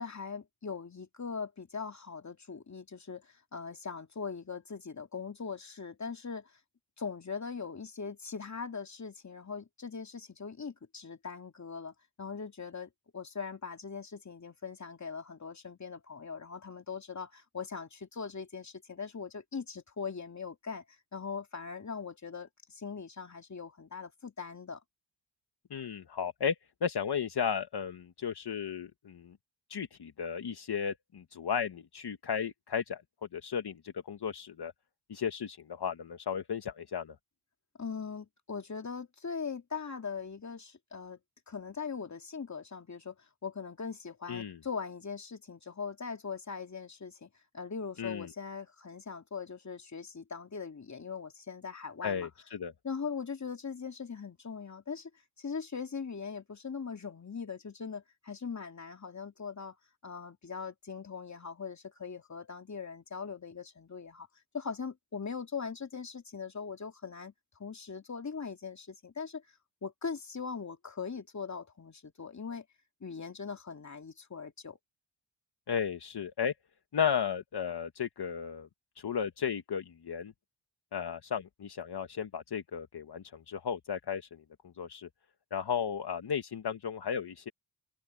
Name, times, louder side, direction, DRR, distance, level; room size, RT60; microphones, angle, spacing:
voice 1, 0.0-6.5 7.0-11.9 12.2-24.8 37.8-41.2 41.5-43.2 43.4-47.3 47.5-52.3 52.8-55.1 55.4-59.7 60.0-64.3 64.5-67.3 67.6-69.4 69.8-72.6 73.0-74.8, left 5 dB, 35° left, 2.6 m, -40 dB
voice 2, 25.7-26.6 26.8-29.3 29.7-33.0 33.3-34.7 35.1-37.2 44.3-44.6 48.0-48.3 52.0-52.7 75.7-76.5 76.9-78.7 79.0-80.3 80.9-84.4 84.8-85.1 85.5-87.5, left 7 dB, 55° left, 1.7 m, -34 dB
open air
cardioid pair, 55°, 47 cm